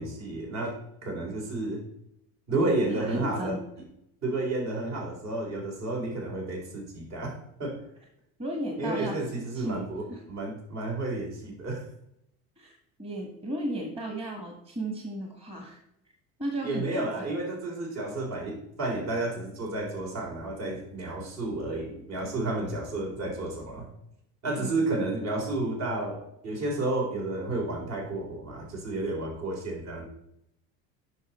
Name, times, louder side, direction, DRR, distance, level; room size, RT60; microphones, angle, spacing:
voice 1, 0.0-1.8 2.5-3.6 4.2-7.8 8.8-11.9 16.6-23.9 24.4-30.1, right 2 dB, 55° right, 0 dB, 3.9 m, -31 dB
voice 2, 2.6-3.6 8.4-9.2 9.5-10.2 12.6-15.8 16.4-17.3 24.6-24.7, right 1 dB, 20° right, 2 dB, 1.6 m, -35 dB
9.8 x 6.1 x 4.3 m, 0.77 s
cardioid pair, 140°, 32 cm